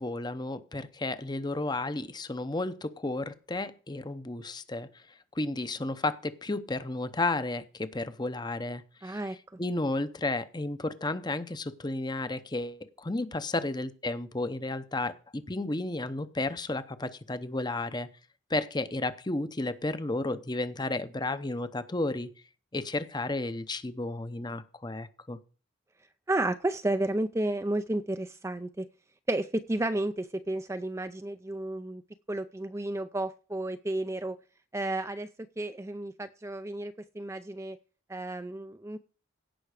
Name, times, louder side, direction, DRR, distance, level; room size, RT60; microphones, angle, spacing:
voice 1, 0.0-4.9 5.3-9.2 9.6-18.1 18.5-22.3 22.7-25.4, left 2 dB, 20° left, 12 dB, 0.7 m, -32 dB
voice 2, 9.0-9.4 26.3-28.9 29.3-32.0 32.3-34.4 34.7-35.3 35.6-37.8 38.1-39.0, right 1 dB, 15° right, 10 dB, 0.4 m, -32 dB
16.5 x 5.8 x 4.9 m, 0.37 s
head